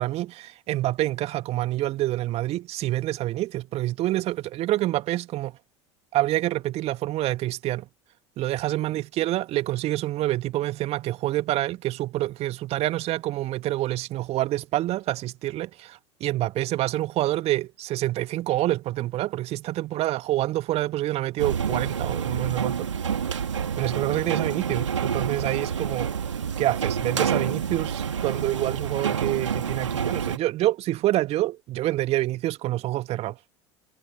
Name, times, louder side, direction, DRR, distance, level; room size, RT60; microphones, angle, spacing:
voice 1, 0.0-5.6 6.1-7.9 8.4-23.0 23.8-26.1 26.6-33.4, right 15 dB, 40° right, 2.6 m, -27 dB
sound 1, 21.4-30.4, right 7 dB, 75° right, 2.8 m, -28 dB
figure-of-eight pair, 75°, 15 cm